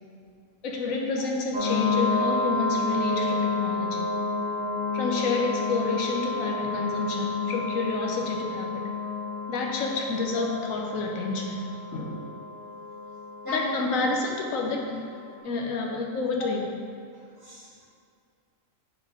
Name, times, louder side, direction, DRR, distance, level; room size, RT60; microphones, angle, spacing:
voice 1, 0.6-4.1 4.9-8.8 9.5-12.3 13.5-15.1 15.4-16.8, left 3 dB, 75° left, 0 dB, 1.2 m, -29 dB
sound 1, 1.5-15.2, left 3 dB, 80° right, 1.8 m, -30 dB
voice 2, 13.4-14.1 17.4-17.9, right 1 dB, 15° right, -8 dB, 1.6 m, -34 dB
9.6 x 3.6 x 3.7 m, 2.2 s
omnidirectional pair, 1.4 m